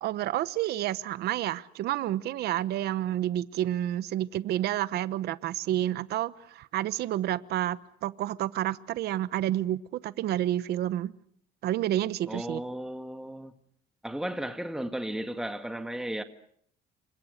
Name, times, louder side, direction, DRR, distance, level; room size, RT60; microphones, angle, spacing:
voice 1, 0.0-11.1 11.6-12.6, right 13 dB, 75° right, 1.0 m, -29 dB
voice 2, 12.3-13.5 14.0-16.2, right 1 dB, 5° right, 1.8 m, -34 dB
28.5 x 25.5 x 6.6 m
cardioid pair, 110°, 17 cm